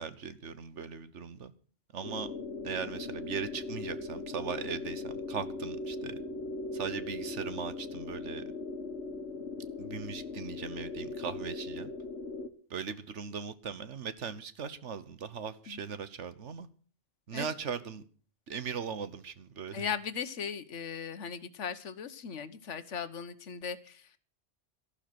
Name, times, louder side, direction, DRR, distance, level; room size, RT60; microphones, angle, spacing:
voice 1, 0.0-1.5 1.9-2.3 2.6-6.2 6.7-8.4 9.8-11.9 12.7-16.7 17.3-18.0 18.5-19.9, right 6 dB, 80° right, 14 dB, 1.4 m, -39 dB
sound 1, 2.0-12.5, left 3 dB, 65° left, 1.6 m, -39 dB
voice 2, 19.7-24.2, left 7 dB, 85° left, 13 dB, 1.4 m, -38 dB
13.5 x 12.0 x 6.0 m, 0.41 s
omnidirectional pair, 1.2 m